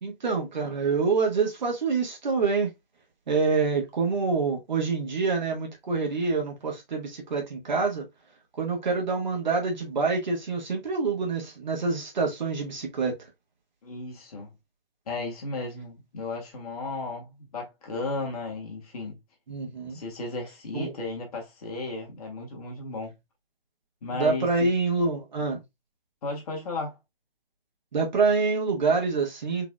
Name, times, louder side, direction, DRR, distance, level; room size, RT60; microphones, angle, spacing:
voice 1, 0.0-2.7 3.3-8.0 8.6-13.1 19.5-20.0 20.7-20.9 24.1-25.6 27.9-29.6, right 4 dB, 50° right, 1.5 m, -26 dB
voice 2, 13.8-14.5 15.1-19.2 19.9-23.1 24.0-24.7 26.2-27.0, left 3 dB, 40° left, 1.6 m, -34 dB
3.9 x 3.7 x 2.3 m
figure-of-eight pair, 135°, 30 cm